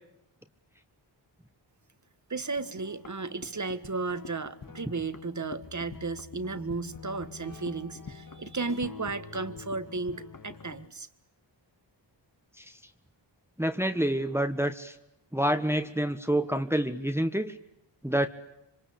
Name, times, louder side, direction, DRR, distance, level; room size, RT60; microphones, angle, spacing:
voice 1, 2.3-11.1, right 3 dB, 40° right, 12 dB, 1.7 m, -34 dB
sound 1, 2.6-10.9, left 5 dB, 45° left, 2.0 m, -46 dB
voice 2, 13.6-14.9 15.3-17.5 18.0-18.3, right 1 dB, 5° right, 8 dB, 1.5 m, -27 dB
26.5 x 26.0 x 8.7 m, 0.82 s
wide cardioid pair, 75°, 45 cm